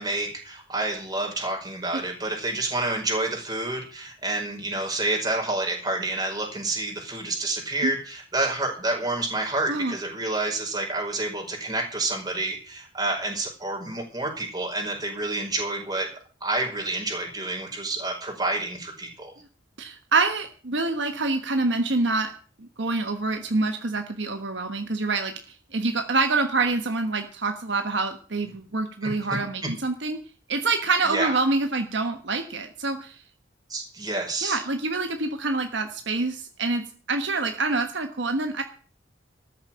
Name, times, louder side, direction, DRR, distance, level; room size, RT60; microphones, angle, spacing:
voice 1, 0.0-16.1 16.4-19.3 29.0-29.4 31.1-31.3 33.7-34.6, right 2 dB, 20° right, 0 dB, 5.2 m, -29 dB
voice 2, 19.8-22.3 22.6-25.3 25.7-30.2 30.5-33.2 34.4-38.6, right 3 dB, 65° right, 6 dB, 1.3 m, -26 dB
13.5 x 7.4 x 8.9 m, 0.42 s
head